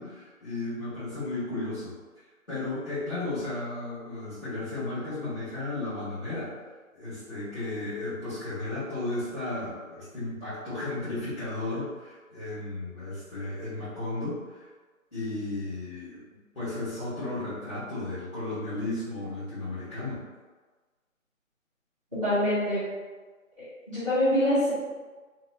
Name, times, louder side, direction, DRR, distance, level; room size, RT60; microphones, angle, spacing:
voice 1, 0.0-1.9 2.5-6.5 6.9-14.7 15.1-20.2, left 2 dB, 5° right, -18 dB, 1.3 m, -34 dB
voice 2, 22.2-22.8 23.9-24.7, left 1 dB, 25° right, -12 dB, 1.5 m, -24 dB
3.4 x 2.8 x 2.5 m, 1.3 s
figure-of-eight pair, 160°, 42 cm